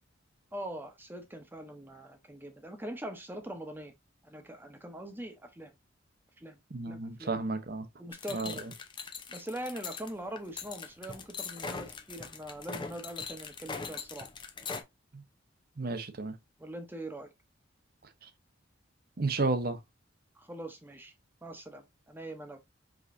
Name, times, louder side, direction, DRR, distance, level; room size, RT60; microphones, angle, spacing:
voice 1, 0.5-3.9 4.2-5.7 6.4-6.6 6.9-7.4 8.0-8.7 9.3-14.3 16.6-17.3 20.3-21.1 21.4-22.6, right 1 dB, 10° right, 0.9 m, -42 dB
voice 2, 6.7-7.9 8.3-8.5 15.8-16.3 19.2-19.8, right 3 dB, 50° right, 0.8 m, -32 dB
sound 1, 8.1-14.8, left 5 dB, 25° left, 0.6 m, -41 dB
4.9 x 4.0 x 2.5 m
head